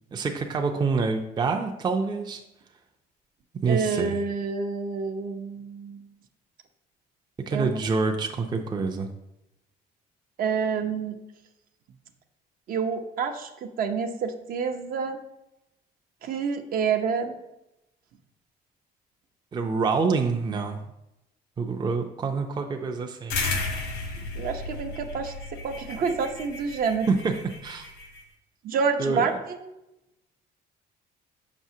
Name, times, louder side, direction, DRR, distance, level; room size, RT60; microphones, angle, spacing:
voice 1, 0.1-2.4 3.6-4.2 7.5-9.1 19.5-20.8 21.6-23.4 27.1-27.9 29.0-29.4, right 4 dB, 25° right, 3 dB, 0.5 m, -26 dB
voice 2, 3.7-6.0 7.5-7.8 10.4-11.2 12.7-15.2 16.2-17.4 24.4-27.1 28.6-29.7, right 5 dB, 60° right, 6 dB, 0.7 m, -28 dB
sound 1, 23.3-28.2, left 3 dB, 90° left, 1.1 m, -34 dB
6.1 x 5.7 x 2.8 m, 0.88 s
cardioid pair, 110°, 17 cm